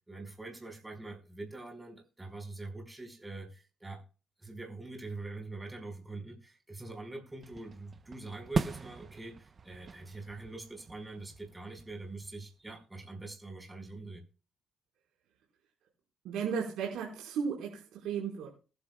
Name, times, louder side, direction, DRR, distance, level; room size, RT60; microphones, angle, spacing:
voice 1, 0.1-4.0 4.4-14.2, right 2 dB, 15° right, 3 dB, 5.3 m, -44 dB
sound 1, 7.4-12.7, right 4 dB, 40° right, 0.9 m, -40 dB
voice 2, 16.2-18.5, right 6 dB, 85° right, -2 dB, 5.0 m, -35 dB
20.5 x 12.0 x 2.4 m, 0.34 s
cardioid pair, 90°, 0 cm